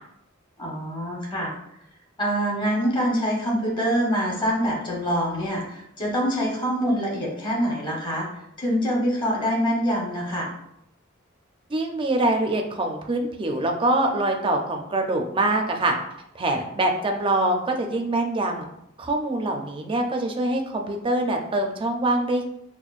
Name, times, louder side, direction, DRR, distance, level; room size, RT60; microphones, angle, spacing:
voice 1, 0.6-1.5 2.2-8.3 8.6-10.5, equal, 25° left, -2 dB, 0.9 m, -25 dB
voice 2, 11.7-15.9 16.3-18.6 19.0-22.5, right 2 dB, 25° right, 3 dB, 0.4 m, -24 dB
6.0 x 2.1 x 2.4 m, 0.79 s
head